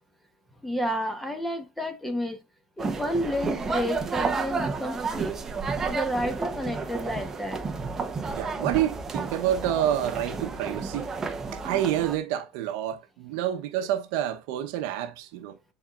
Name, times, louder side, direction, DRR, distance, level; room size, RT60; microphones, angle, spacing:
voice 1, 0.6-2.4 2.8-5.3 5.8-7.6, equal, 5° left, 1.1 m, -30 dB
sound 1, 2.8-12.2, right 4 dB, 20° right, 0.8 m, -31 dB
voice 2, 8.4-11.1 11.5-15.6, right 11 dB, 70° right, 0.9 m, -28 dB
10.0 x 4.1 x 2.4 m
supercardioid pair, 145°, 2 cm